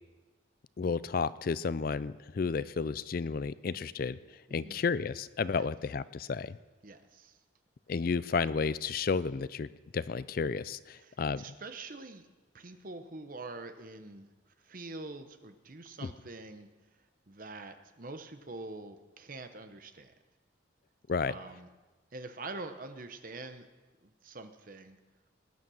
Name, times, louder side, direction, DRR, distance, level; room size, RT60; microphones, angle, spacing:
voice 1, 0.8-4.2 4.5-6.6 7.9-9.7 9.9-11.4 16.0-16.1 21.1-21.3, left 5 dB, 45° left, 17 dB, 0.4 m, -32 dB
voice 2, 6.8-7.4 11.0-12.3 12.5-14.3 14.6-16.7 17.3-20.1 21.3-21.7 22.1-23.7 24.0-25.0, right 3 dB, 45° right, 8 dB, 1.0 m, -45 dB
19.0 x 9.7 x 6.4 m, 1.2 s
head